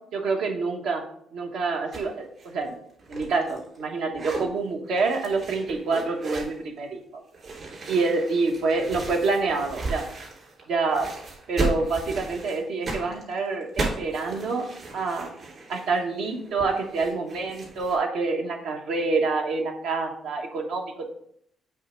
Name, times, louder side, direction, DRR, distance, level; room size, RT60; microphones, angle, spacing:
voice 1, 0.1-1.0 1.3-2.7 3.1-7.2 7.9-10.0 10.7-11.1 11.5-14.6 14.9-15.3 15.7-21.0, right 3 dB, 80° right, 2 dB, 1.3 m, -27 dB
sound 1, 1.9-2.1 2.4-3.8 4.1-4.5 4.9-6.6 7.3-10.6 10.9-18.0, right 3 dB, 50° right, 3.0 m, -35 dB
7.6 x 3.5 x 5.1 m, 0.68 s
cardioid pair, 90°, 0 cm